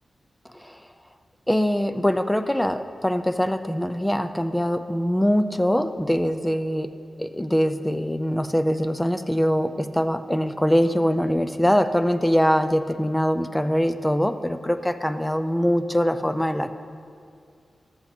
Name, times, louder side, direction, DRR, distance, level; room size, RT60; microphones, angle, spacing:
voice 1, 1.5-6.9 7.2-16.7, equal, 5° left, 10 dB, 0.4 m, -23 dB
14.0 x 13.0 x 4.4 m, 2.4 s
wide cardioid pair, 180°, 0 cm